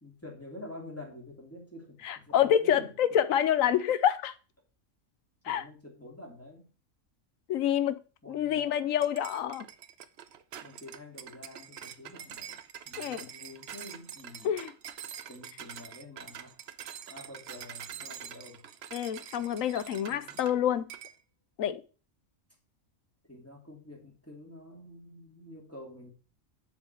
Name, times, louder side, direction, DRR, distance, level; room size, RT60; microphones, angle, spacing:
voice 1, 0.0-2.9 5.4-6.7 8.2-8.9 10.6-12.6 12.9-14.5 15.3-16.5 17.1-18.6 20.0-20.4 23.3-26.1, left 1 dB, 10° left, -1 dB, 2.6 m, -48 dB
voice 2, 2.0-4.3 5.4-5.6 7.5-8.0 8.3-9.7 13.0-13.3 14.4-14.7 18.9-20.9 21.6-21.8, left 10 dB, 75° left, 15 dB, 1.1 m, -27 dB
sound 1, 9.0-20.6 20.9-21.2, right 9 dB, 60° right, 0.8 m, -45 dB
7.2 x 4.4 x 6.7 m, 0.35 s
omnidirectional pair, 1.4 m